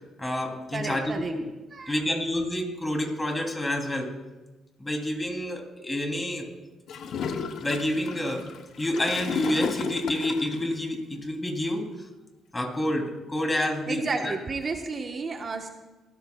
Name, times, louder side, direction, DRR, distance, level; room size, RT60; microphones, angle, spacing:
voice 1, 0.2-1.4 1.9-4.1 4.8-6.4 7.6-8.5 8.8-12.1 12.5-14.4, left 1 dB, 20° left, 2 dB, 3.2 m, -28 dB
voice 2, 0.7-1.3 1.7-2.1 13.9-15.7, right 4 dB, 40° right, 4 dB, 1.2 m, -32 dB
Gurgling / Toilet flush, 6.9-10.6, left 6 dB, 70° left, 0.9 m, -33 dB
23.0 x 13.5 x 2.4 m, 1.1 s
cardioid pair, 80°, 0 cm